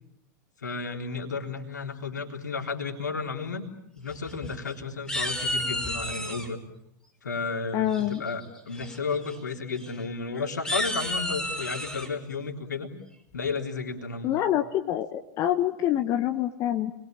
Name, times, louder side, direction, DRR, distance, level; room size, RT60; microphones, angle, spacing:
voice 1, 0.6-3.7 3.9-6.6 7.2-12.9 13.3-14.4, left 4 dB, 75° left, 3 dB, 3.8 m, -33 dB
sound 1, 4.1-4.7 5.1-6.5 7.9-8.3 8.7-9.0 9.2-9.4 9.7-9.9 10.5-12.1, left 1 dB, 5° left, 5.1 m, -31 dB
voice 2, 7.7-8.2 14.2-16.9, left 12 dB, 35° left, 6 dB, 1.5 m, -26 dB
30.0 x 22.0 x 8.8 m, 0.79 s
figure-of-eight pair, 90°, 10 cm